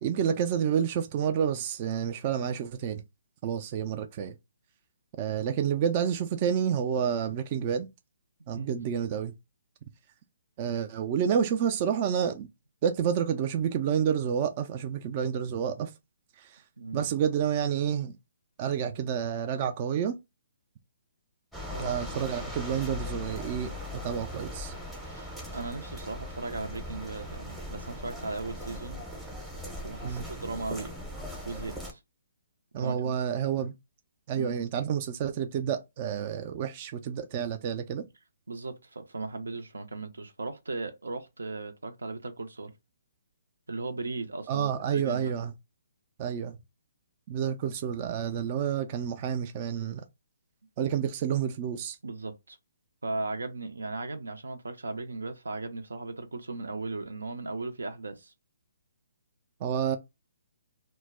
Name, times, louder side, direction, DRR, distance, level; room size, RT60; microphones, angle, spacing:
voice 1, 0.0-3.0 3.4-4.4 5.2-7.9 8.5-9.3 10.6-12.5 12.8-15.9 16.4-16.5 16.9-18.1 18.6-20.2 21.8-24.7 30.0-30.2 32.7-33.7 34.3-38.0 44.5-45.5 46.2-46.6 47.3-50.0 50.8-52.0 59.6-60.0, right 8 dB, 35° right, 0.3 m, -29 dB
sound 1, 21.5-31.9, left 1 dB, 5° right, 0.7 m, -39 dB
voice 2, 25.0-29.0 29.8-30.9 31.4-32.0 32.8-33.2 34.3-34.6 38.5-42.7 43.7-45.3 52.0-52.6 53.0-58.3, right 3 dB, 85° right, 0.5 m, -37 dB
2.2 x 2.0 x 3.4 m
hypercardioid pair, 145°, 0 cm